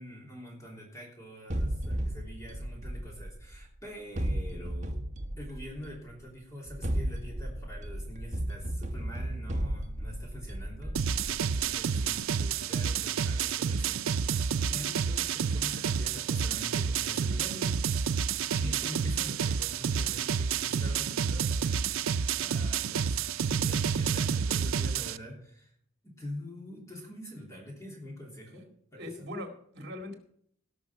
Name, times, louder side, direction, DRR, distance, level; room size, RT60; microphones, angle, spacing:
voice 1, 0.0-5.0 5.4-18.0 18.5-23.2 23.5-25.7 26.0-28.6 28.9-29.1, equal, 15° left, -2 dB, 3.1 m, -45 dB
sound 1, 1.5-3.6 4.2-6.0 6.7-11.7, right 1 dB, 35° right, 1.1 m, -34 dB
sound 2, 11.0-25.2, right 7 dB, 90° right, 0.5 m, -29 dB
voice 2, 28.9-30.2, left 1 dB, 55° right, 4 dB, 2.5 m, -40 dB
18.5 x 6.1 x 6.0 m, 0.68 s
head